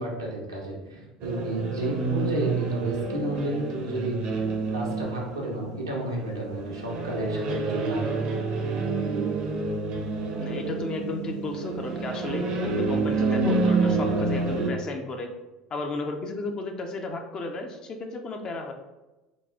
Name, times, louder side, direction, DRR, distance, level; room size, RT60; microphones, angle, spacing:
voice 1, 0.0-4.2 4.7-8.3, right 1 dB, 90° right, -3 dB, 0.9 m, -31 dB
sound 1, 1.2-14.7, right 3 dB, 50° right, 0.7 m, -28 dB
voice 2, 10.4-15.3 15.7-18.7, left 3 dB, 35° left, 4 dB, 0.6 m, -33 dB
4.0 x 2.4 x 3.5 m, 1.1 s
figure-of-eight pair, 70°, 2 cm